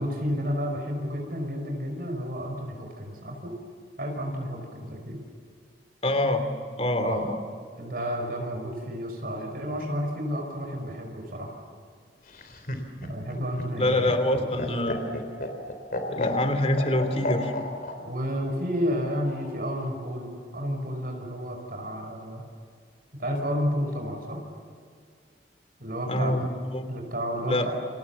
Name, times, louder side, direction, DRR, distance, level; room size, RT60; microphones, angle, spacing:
voice 1, 0.0-3.5 4.0-5.2 7.0-7.3 7.8-11.5 13.0-14.7 18.0-22.4 23.2-24.5 25.8-26.5 26.9-27.8, equal, 55° right, 2 dB, 5.3 m, -31 dB
voice 2, 6.0-6.4 6.8-7.4 13.8-15.1 16.1-17.5 26.1-26.8 27.5-27.7, left 1 dB, 35° left, 8 dB, 2.9 m, -25 dB
Laughter, 12.3-18.0 19.2-19.9, left 2 dB, 50° left, 3.7 m, -32 dB
29.5 x 27.5 x 7.2 m, 2.2 s
head